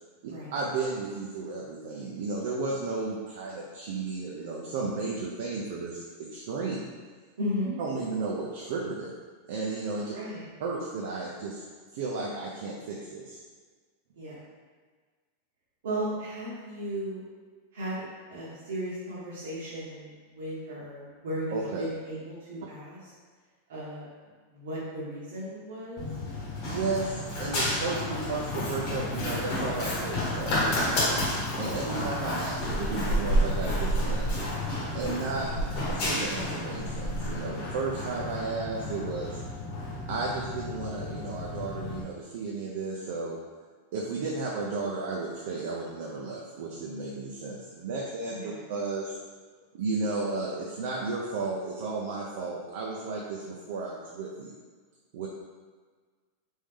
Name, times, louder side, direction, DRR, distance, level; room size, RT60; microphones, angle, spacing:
voice 1, 0.2-6.9 7.8-9.1 9.5-10.1 10.6-11.6 11.9-13.4 21.5-21.9 26.6-31.0 31.6-34.5 34.9-35.5 35.9-39.4 40.1-43.4 43.9-49.2 49.7-54.6 55.1-55.3, right 3 dB, 65° right, -3 dB, 0.5 m, -33 dB
voice 2, 7.4-7.7 10.1-10.4 14.1-14.4 15.8-17.2 17.7-23.0 23.7-24.1 24.5-26.1 28.0-28.2 35.5-35.7 48.3-48.5, equal, 85° right, -9 dB, 1.1 m, -35 dB
Run, 26.0-42.0, left 1 dB, 45° left, 1.0 m, -30 dB
3.1 x 2.6 x 3.6 m, 1.5 s
supercardioid pair, 155°, 0 cm